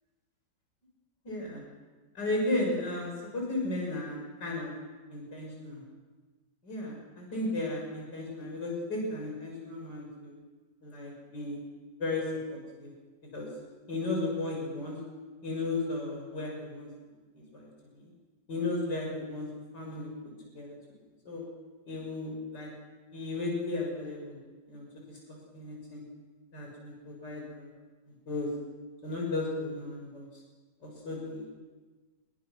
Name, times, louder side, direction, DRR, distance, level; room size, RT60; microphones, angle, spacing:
voice 1, 1.2-1.6 2.1-4.7 5.1-5.8 6.6-10.3 10.8-11.6 12.0-12.9 13.3-13.5 13.9-15.0 15.4-16.9 17.5-17.7 17.9-18.1 18.5-19.5 19.7-20.1 20.5-20.8 21.2-21.4 21.9-22.7 23.1-24.3 24.7-24.8 25.5-26.0 26.5-27.7 28.3-28.5 29.0-30.2 30.8-31.4, left 2 dB, 75° left, -1 dB, 6.8 m, -34 dB
26.5 x 22.0 x 6.3 m, 1.3 s
omnidirectional pair, 1.9 m